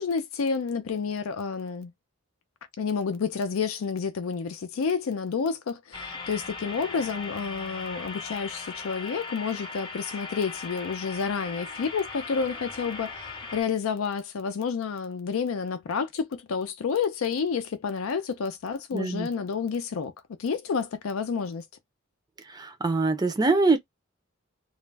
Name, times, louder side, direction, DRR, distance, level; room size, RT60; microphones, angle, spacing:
voice 1, 0.0-1.9 2.8-13.3 13.5-20.1 20.4-21.6, left 5 dB, 85° left, 0.4 m, -29 dB
sound 1, 5.9-13.6, left 4 dB, 25° left, 0.6 m, -38 dB
voice 2, 18.9-19.3 22.5-23.8, right 3 dB, 20° right, 0.4 m, -24 dB
2.3 x 2.0 x 3.2 m
head